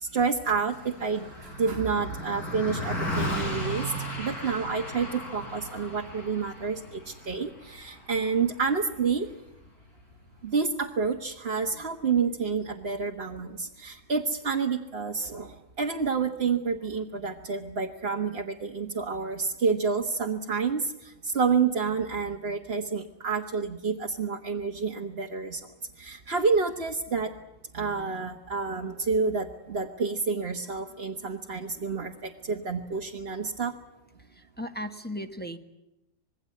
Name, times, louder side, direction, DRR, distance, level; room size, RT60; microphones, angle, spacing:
voice 1, 0.0-9.3 10.4-25.6 26.0-27.3 27.7-33.7, right 5 dB, 40° right, 1 dB, 1.5 m, -29 dB
Car passing by, 0.7-10.3, equal, 75° left, 6.3 m, -36 dB
voice 2, 34.4-35.6, equal, 5° left, 5 dB, 1.3 m, -36 dB
26.0 x 21.5 x 8.5 m, 0.92 s
omnidirectional pair, 1.6 m